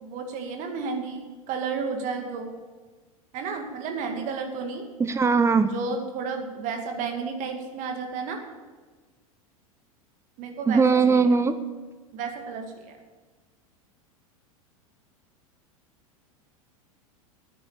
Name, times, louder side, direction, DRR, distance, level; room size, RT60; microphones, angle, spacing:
voice 1, 0.0-2.5 3.3-4.9 5.7-8.4 10.4-11.2 12.1-13.0, right 5 dB, 45° right, 4 dB, 2.2 m, -32 dB
voice 2, 5.0-5.7 10.7-11.5, right 5 dB, 15° right, 11 dB, 0.8 m, -20 dB
9.6 x 9.4 x 8.7 m, 1.3 s
figure-of-eight pair, 85°, 18 cm